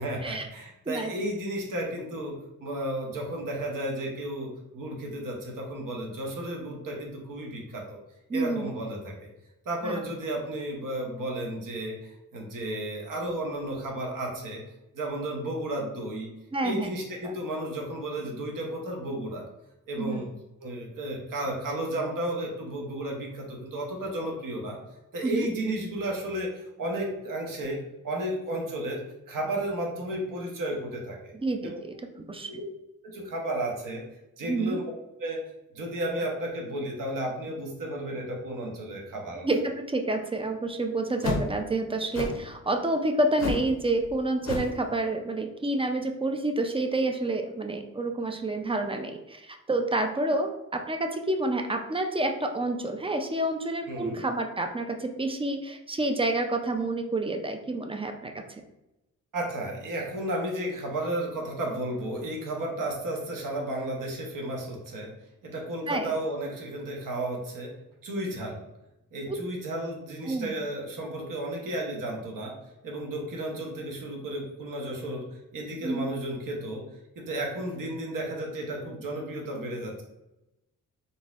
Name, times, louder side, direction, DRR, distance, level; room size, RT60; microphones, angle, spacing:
voice 1, 0.0-2.3 2.6-8.0 8.3-9.3 9.6-14.6 14.9-16.3 16.6-19.4 19.9-20.3 20.6-24.8 25.1-27.8 28.0-31.3 31.6-31.8 32.4-32.6 33.0-34.0 34.4-34.8 35.2-35.4 35.7-39.5 53.9-54.2 59.3-65.1 65.4-67.7 68.0-68.6 69.1-72.5 72.8-76.8 77.1-80.0, right 1 dB, 75° right, 0 dB, 0.9 m, -33 dB
voice 2, 8.3-8.7 9.8-10.0 16.5-16.9 17.2-17.3 20.0-20.3 25.2-25.5 31.3-32.5 34.5-34.8 39.4-58.4 65.9-66.1 70.3-70.5 75.8-76.1, right 2 dB, 15° right, 5 dB, 0.3 m, -29 dB
sound 1, 41.2-41.5 42.1-42.5 43.4-43.7 44.0-44.2 44.4-44.8, left 3 dB, 50° left, 0.6 m, -31 dB
3.9 x 2.6 x 2.4 m, 0.91 s
cardioid pair, 85°, 33 cm